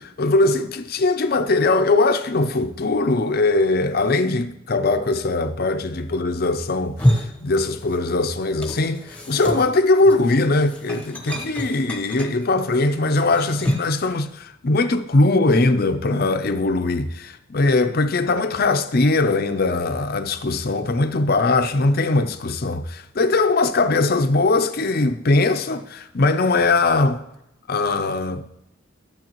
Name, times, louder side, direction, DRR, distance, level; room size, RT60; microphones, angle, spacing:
voice 1, 0.0-27.2 27.7-28.4, left 2 dB, 50° left, 0.6 m, -20 dB
sound 1, 6.8-8.2 8.4-14.0, equal, 5° left, 1.1 m, -27 dB
13.0 x 7.0 x 3.0 m
head